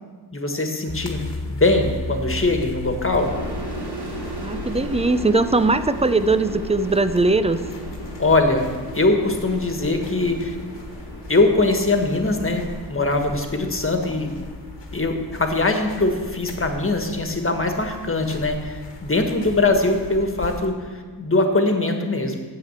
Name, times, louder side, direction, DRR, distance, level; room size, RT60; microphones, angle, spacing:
voice 1, 0.3-1.2 1.5-3.3 8.2-8.7 8.9-10.5 11.3-14.3 14.9-22.4, left 2 dB, 30° left, 4 dB, 1.6 m, -21 dB
sound 1, 0.9-20.7, left 2 dB, 75° left, 1.6 m, -36 dB
sound 2, 3.2-16.6, right 2 dB, 65° right, 3.0 m, -37 dB
voice 2, 4.4-7.6, right 3 dB, 15° right, 12 dB, 0.5 m, -20 dB
9.5 x 7.6 x 7.4 m, 1.5 s
wide cardioid pair, 75°, 42 cm